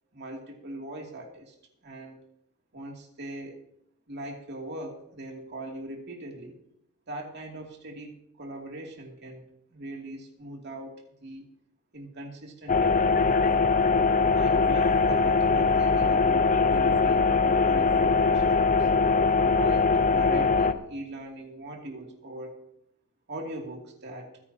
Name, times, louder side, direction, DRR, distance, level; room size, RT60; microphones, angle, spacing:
voice 1, 0.1-1.5 1.8-2.2 2.7-3.6 4.1-6.6 7.1-11.5 11.9-13.7 14.3-18.9 19.4-22.6 23.3-24.4, right 1 dB, 55° right, 1 dB, 2.7 m, -40 dB
sound 1, 12.7-20.7, left 4 dB, 35° left, 0.7 m, -22 dB
27.0 x 10.0 x 2.9 m, 0.77 s
head